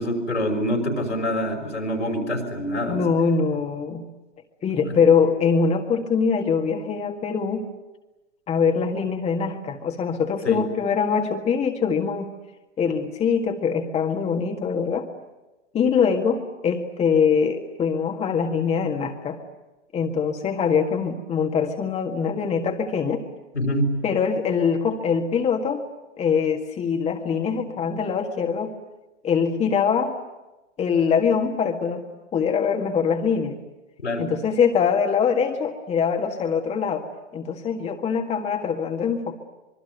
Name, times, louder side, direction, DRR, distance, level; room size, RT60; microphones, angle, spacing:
voice 1, 0.0-3.0 4.8-5.0 10.4-10.6 23.5-24.0 34.0-34.3, equal, 80° left, 3 dB, 5.9 m, -25 dB
voice 2, 2.9-4.0 4.6-7.7 8.5-12.3 12.8-15.1 15.7-19.4 19.9-23.2 24.0-25.8 26.2-28.7 29.2-30.1 30.8-32.0 32.3-33.5 34.2-37.1 37.3-39.4, left 6 dB, 20° left, 3 dB, 1.8 m, -23 dB
26.0 x 22.5 x 9.4 m, 1.0 s
figure-of-eight pair, 100°, 35 cm